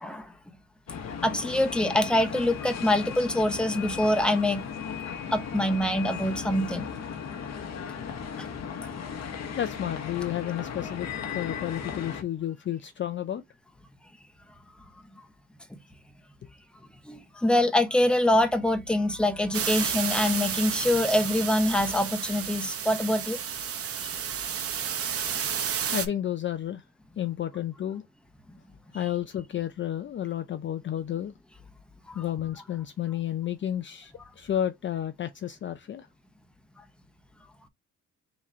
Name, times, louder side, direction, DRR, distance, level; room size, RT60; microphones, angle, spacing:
voice 1, 0.0-0.3 1.2-4.6 5.3-6.8 17.0-23.4 32.1-32.2, left 1 dB, 5° left, 0.8 m, -25 dB
sound 1, 0.9-12.2, left 7 dB, 60° left, 1.0 m, -36 dB
voice 2, 9.6-11.1 11.3-13.4 25.9-26.8 27.2-28.0 28.9-31.3 32.1-36.1, left 11 dB, 40° left, 0.5 m, -31 dB
sound 2, 19.5-26.1, right 8 dB, 50° right, 0.7 m, -31 dB
3.7 x 3.0 x 4.3 m
cardioid pair, 90°, 30 cm